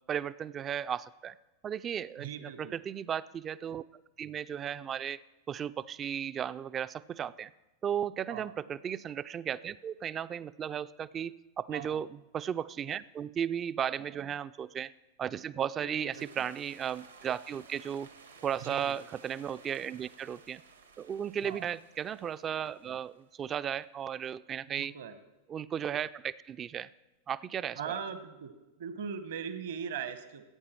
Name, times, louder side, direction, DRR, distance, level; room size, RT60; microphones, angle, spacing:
voice 1, 0.1-1.3 1.6-3.8 4.2-5.2 5.5-7.5 7.8-14.9 15.2-18.1 18.4-20.6 21.0-24.9 25.5-26.9 27.3-27.8, right 8 dB, 25° right, 17 dB, 0.3 m, -35 dB
voice 2, 2.2-2.8 8.3-8.6 11.7-12.0 14.1-14.2 15.8-16.4 18.6-18.9 21.4-21.7 24.7-25.2 27.8-28.5 28.8-30.5, right 7 dB, 55° right, 11 dB, 0.9 m, -40 dB
sound 1, 16.1-23.3, right 5 dB, 75° right, 1.2 m, -56 dB
14.5 x 8.7 x 4.4 m, 1.0 s
figure-of-eight pair, 90°, 0 cm